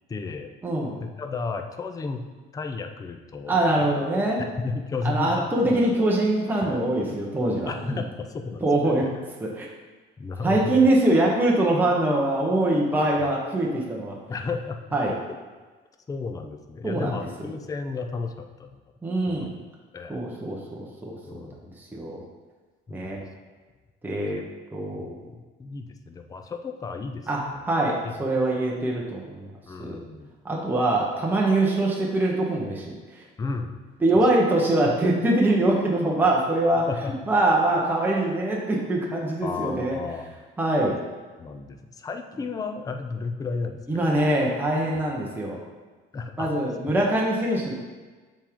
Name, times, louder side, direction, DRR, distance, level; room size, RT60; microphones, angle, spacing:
voice 1, 0.1-0.5 1.0-2.3 2.5-3.5 4.6-5.8 6.6-6.8 7.7-8.9 10.2-10.8 13.2-13.4 14.3-14.8 16.1-18.8 19.3-19.5 19.9-20.2 21.3-21.6 22.9-23.3 24.3-24.4 24.9-27.6 28.0-28.1 29.7-30.3 33.4-33.8 36.9-37.1 39.4-40.3 41.4-44.2 44.9-45.0 46.1-46.5, left 4 dB, 20° left, 6 dB, 0.4 m, -33 dB
voice 2, 0.6-1.0 3.5-4.4 5.0-8.0 8.6-9.1 9.4-9.7 10.4-14.2 14.9-15.2 16.8-17.3 19.0-19.5 20.1-22.2 22.9-23.2 24.0-24.4 24.7-25.1 27.3-30.0 30.4-33.3 34.0-36.9 37.3-40.0 40.6-41.0 43.9-45.6 46.4-47.7, right 1 dB, 10° right, -3 dB, 0.9 m, -23 dB
7.3 x 3.6 x 3.6 m, 1.3 s
cardioid pair, 125°, 20 cm